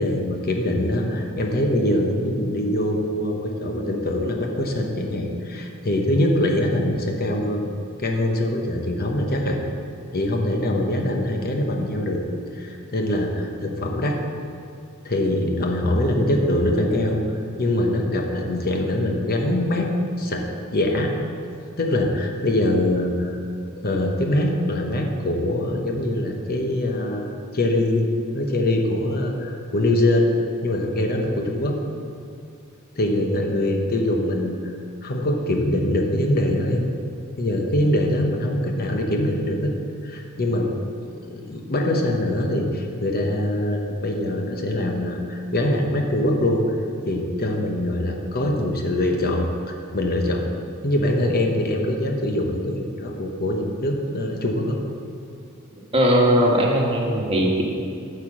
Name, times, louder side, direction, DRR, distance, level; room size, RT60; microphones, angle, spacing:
voice 1, 0.0-7.6 8.0-9.6 10.1-12.2 12.5-14.2 15.0-17.2 17.6-19.9 20.2-20.5 20.7-21.1 21.8-27.3 27.5-28.1 28.3-30.3 30.6-31.8 33.0-34.7 35.0-36.8 37.4-39.7 40.0-40.7 41.0-46.6 47.1-50.5 50.8-54.8, left 1 dB, 45° left, 2 dB, 0.9 m, -23 dB
voice 2, 55.9-57.6, equal, 25° right, -2 dB, 1.3 m, -19 dB
9.3 x 4.7 x 7.3 m, 2.5 s
head